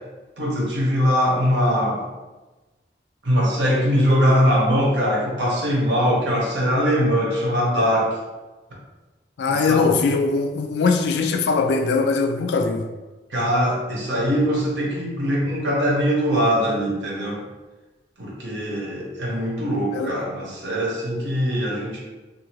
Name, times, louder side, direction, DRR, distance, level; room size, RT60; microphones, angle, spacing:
voice 1, 0.4-2.0 3.2-8.1 9.5-9.8 13.3-17.4 18.2-22.0, equal, 80° right, 0.9 m, -21 dB
voice 2, 9.4-12.9 19.9-20.1, left 4 dB, 70° left, 0.3 m, -21 dB
2.7 x 2.4 x 2.9 m
head